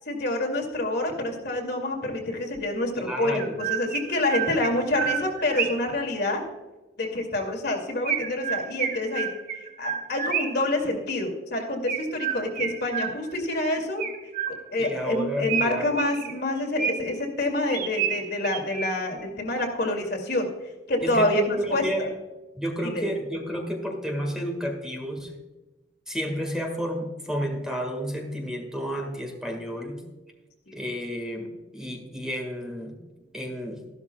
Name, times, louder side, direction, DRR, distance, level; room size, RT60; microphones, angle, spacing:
voice 1, 0.1-6.5 7.0-9.3 9.6-14.1 14.5-20.5 20.9-22.1 22.8-23.1 30.7-30.8, left 1 dB, 60° left, 3 dB, 2.4 m, -27 dB
Chirp tweet, 2.5-2.6 3.3-6.0 8.0-10.7 11.9-13.5 14.0-14.9 15.5-17.2 17.7-19.2, right 8 dB, 50° right, 1.0 m, -30 dB
voice 2, 3.0-3.6 14.8-15.9 21.0-22.0 22.5-25.3 26.1-30.0 30.7-33.0 33.3-33.8, equal, 5° right, 3 dB, 1.7 m, -31 dB
14.0 x 12.0 x 2.3 m, 1.1 s
head